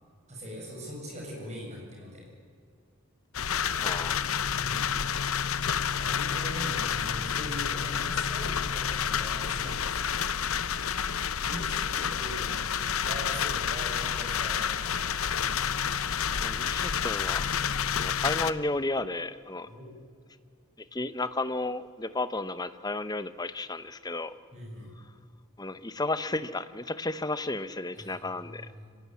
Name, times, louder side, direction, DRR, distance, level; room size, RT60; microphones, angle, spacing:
voice 1, 0.3-2.2 4.6-4.9 5.9-10.3 11.4-12.7 13.0-15.2 19.7-20.0 24.5-24.9 27.9-28.9, equal, 30° right, -1 dB, 8.0 m, -41 dB
sound 1, 3.3-18.5, left 7 dB, 85° left, 0.8 m, -29 dB
voice 2, 3.8-4.3 16.4-17.4 18.0-19.7 20.9-24.3 25.6-28.7, left 2 dB, 20° left, 13 dB, 0.8 m, -33 dB
25.0 x 17.5 x 9.6 m, 2.3 s
head